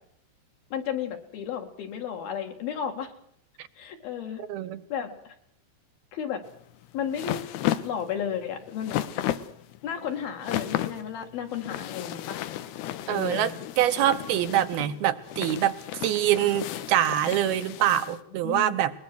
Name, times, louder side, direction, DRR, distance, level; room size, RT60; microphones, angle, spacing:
voice 1, 0.7-3.1 3.8-4.4 4.9-5.4 6.1-6.4 6.9-7.4 7.8-9.0 9.8-12.4 13.0-13.5 14.1-14.3 14.8-15.0 18.1-18.2 18.4-18.8, left 8 dB, 65° left, 4 dB, 3.9 m, -33 dB
voice 2, 4.4-4.8 13.1-18.9, right 12 dB, 75° right, 9 dB, 2.8 m, -25 dB
sound 1, 6.5-18.2, left 13 dB, 90° left, 3.1 m, -34 dB
21.0 x 21.0 x 6.2 m, 0.69 s
omnidirectional pair, 4.7 m